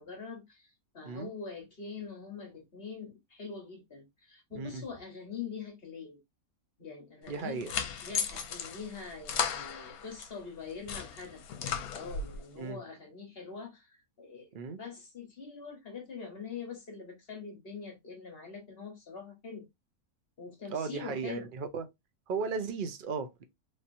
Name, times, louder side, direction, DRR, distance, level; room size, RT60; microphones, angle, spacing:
voice 1, 0.0-6.2 6.8-7.6 8.0-19.7 20.4-21.5, left 5 dB, 45° left, 1.2 m, -44 dB
voice 2, 4.5-4.8 7.3-7.7 12.6-12.8 14.5-14.8 20.7-21.9 22.3-23.4, right 5 dB, 60° right, 0.5 m, -36 dB
sound 1, 7.3-10.3 10.7-12.4, left 7 dB, 75° left, 1.1 m, -36 dB
3.3 x 2.8 x 2.6 m
omnidirectional pair, 1.6 m